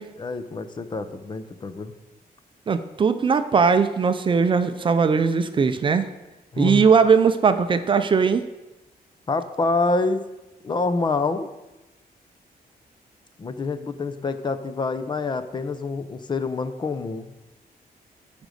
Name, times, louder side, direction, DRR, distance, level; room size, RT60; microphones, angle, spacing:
voice 1, 0.2-1.9 6.5-6.9 9.3-10.2 10.6-11.5 13.4-17.3, left 3 dB, 30° left, 11 dB, 0.6 m, -26 dB
voice 2, 2.7-6.1 6.6-8.4, right 5 dB, 30° right, 10 dB, 0.5 m, -19 dB
14.0 x 5.2 x 6.4 m, 1.0 s
wide cardioid pair, 175°, 16 cm